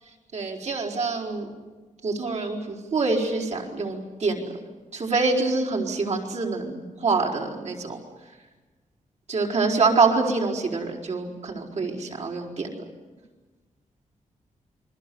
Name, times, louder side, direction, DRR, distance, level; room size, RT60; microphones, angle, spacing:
voice 1, 0.3-1.5 2.0-4.4 4.9-8.0 9.3-12.7, right 3 dB, 55° right, -2 dB, 4.7 m, -25 dB
29.0 x 23.5 x 7.0 m, 1.3 s
wide cardioid pair, 160°, 13 cm